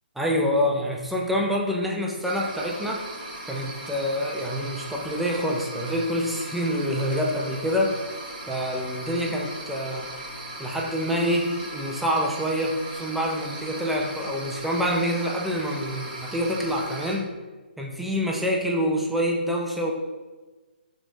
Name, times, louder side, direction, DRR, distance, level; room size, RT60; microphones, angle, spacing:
voice 1, 0.2-3.1 3.5-8.0 8.5-10.1 10.6-17.3 17.8-19.9, equal, ahead, -2 dB, 0.4 m, -26 dB
sound 1, 2.2-17.2, right 1 dB, 40° right, 1.1 m, -38 dB
6.1 x 3.2 x 2.6 m, 1.3 s
figure-of-eight pair, 140°, 6 cm